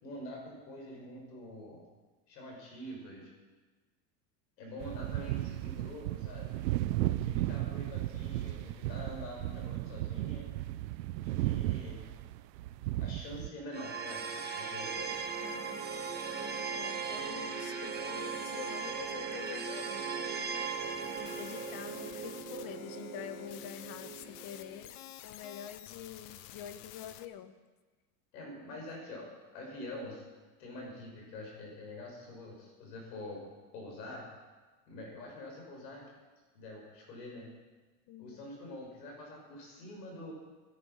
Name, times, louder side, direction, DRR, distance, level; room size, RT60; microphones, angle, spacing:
voice 1, 0.0-1.8 2.3-3.3 4.6-6.6 7.2-10.5 11.4-12.1 13.0-15.2 28.3-30.2 30.6-33.5 33.7-34.3 34.9-36.1 36.5-37.5 38.2-40.3, left 1 dB, 85° left, -1 dB, 6.4 m, -45 dB
sound 1, 4.8-13.5, right 15 dB, 85° right, 0.8 m, -35 dB
voice 2, 7.0-7.5 15.4-15.8 16.7-20.1 21.2-27.6 38.1-38.5, left 10 dB, 45° left, 11 dB, 1.3 m, -46 dB
sound 2, 13.7-24.8, right 5 dB, 20° right, 2.0 m, -38 dB
sound 3, 21.0-27.2, left 13 dB, 70° left, 1.0 m, -50 dB
14.5 x 13.0 x 5.8 m, 1.3 s
supercardioid pair, 120°, 49 cm